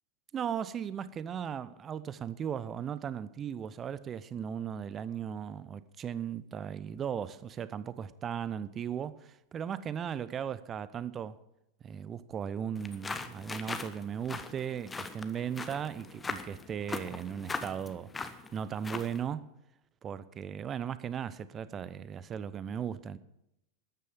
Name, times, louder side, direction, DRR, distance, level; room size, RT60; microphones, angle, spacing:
voice 1, 0.3-11.4 11.8-18.1 18.5-19.6 20.0-23.2, right 8 dB, 25° right, 0.7 m, -37 dB
sound 1, 12.8-19.2, left 4 dB, 15° left, 1.0 m, -40 dB
13.5 x 9.6 x 6.9 m
figure-of-eight pair, 90°, 0 cm